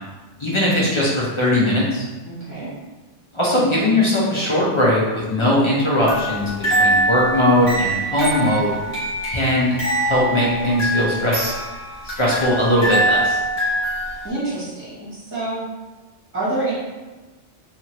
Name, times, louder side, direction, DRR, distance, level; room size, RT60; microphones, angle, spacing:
voice 1, 0.4-2.0 3.3-8.7 9.3-9.7 10.0-11.5 12.0-13.4, left 1 dB, 40° left, -6 dB, 0.4 m, -19 dB
voice 2, 2.2-2.7 14.2-15.6 16.3-16.7, right 2 dB, 10° right, -10 dB, 1.1 m, -27 dB
sound 1, 6.0-14.3, right 1 dB, 65° left, 1.4 m, -23 dB
2.9 x 2.4 x 2.8 m, 1.2 s
omnidirectional pair, 1.2 m